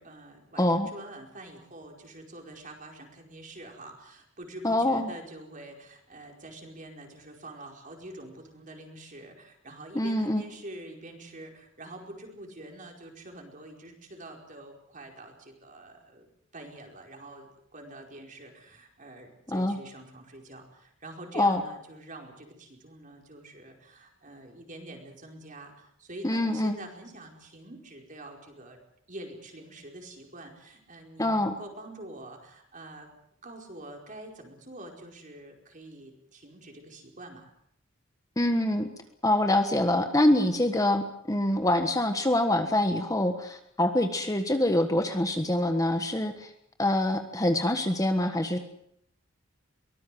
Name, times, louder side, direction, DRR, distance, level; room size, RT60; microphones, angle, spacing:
voice 1, 0.0-28.8 29.1-33.1 33.4-37.5, right 1 dB, 40° right, 2 dB, 4.9 m, -46 dB
voice 2, 0.6-0.9 4.6-5.1 9.9-10.4 19.5-19.8 21.3-21.6 26.2-26.8 31.2-31.5 38.4-38.9 39.2-46.5 46.8-48.6, left 1 dB, 15° left, 7 dB, 1.4 m, -25 dB
23.5 x 19.0 x 7.8 m, 0.72 s
head